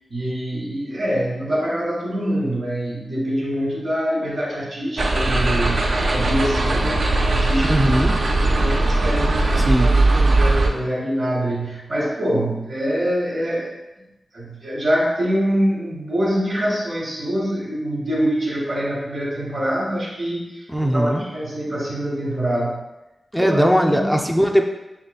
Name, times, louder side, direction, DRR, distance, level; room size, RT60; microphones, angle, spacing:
voice 1, 0.1-7.8 8.6-9.4 10.4-13.7 14.3-22.8 23.4-23.6 23.9-24.2, equal, 80° right, -8 dB, 1.1 m, -24 dB
sound 1, 5.0-10.7, right 2 dB, 65° right, 0.5 m, -19 dB
voice 2, 7.6-8.1 9.6-9.9 20.7-21.3 23.3-24.7, equal, ahead, 2 dB, 0.3 m, -19 dB
5.5 x 3.0 x 2.3 m, 0.98 s
wide cardioid pair, 105°, 0 cm